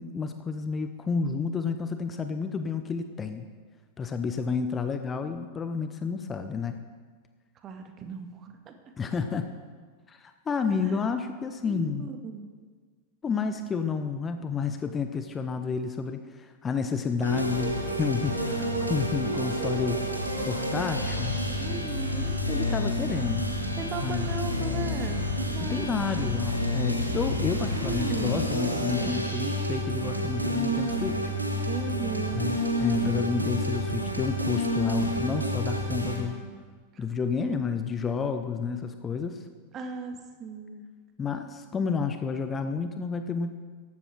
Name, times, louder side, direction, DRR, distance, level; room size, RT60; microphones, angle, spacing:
voice 1, 0.0-3.5 4.0-6.8 9.0-9.5 10.1-12.1 13.2-20.1 20.5-21.4 22.5-23.5 24.0-24.3 25.6-31.3 32.3-36.4 37.0-39.4 41.2-43.5, left 5 dB, 20° left, 8 dB, 0.8 m, -30 dB
voice 2, 7.6-8.8 10.6-11.1 11.6-12.5 21.6-22.4 23.8-26.3 27.7-28.5 31.7-32.6 36.9-37.0 39.7-40.8, right 5 dB, 30° right, 6 dB, 1.7 m, -37 dB
sound 1, 17.2-36.2, equal, 85° right, 2.6 m, -29 dB
15.0 x 12.0 x 4.6 m, 1.5 s
figure-of-eight pair, 90°, 0 cm